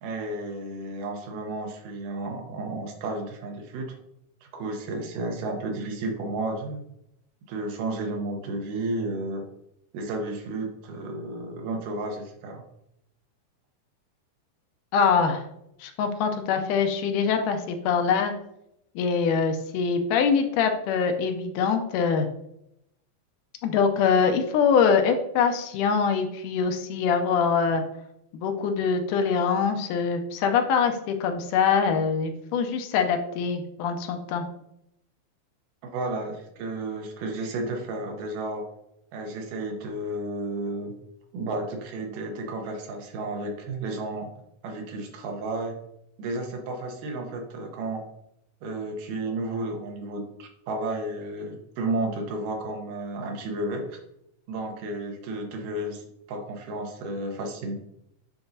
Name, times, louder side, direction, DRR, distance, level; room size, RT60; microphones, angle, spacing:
voice 1, 0.0-4.0 4.4-6.8 7.5-9.5 9.9-12.6 35.8-38.7 39.1-40.9 41.3-44.3 44.6-45.8 46.2-48.0 48.6-54.0 54.5-57.8, right 2 dB, 85° right, 3 dB, 2.5 m, -32 dB
voice 2, 14.9-15.4 15.8-18.3 19.0-22.3 23.6-27.8 28.3-34.5, left 6 dB, 85° left, 6 dB, 2.2 m, -24 dB
9.1 x 3.8 x 2.7 m, 0.80 s
omnidirectional pair, 3.7 m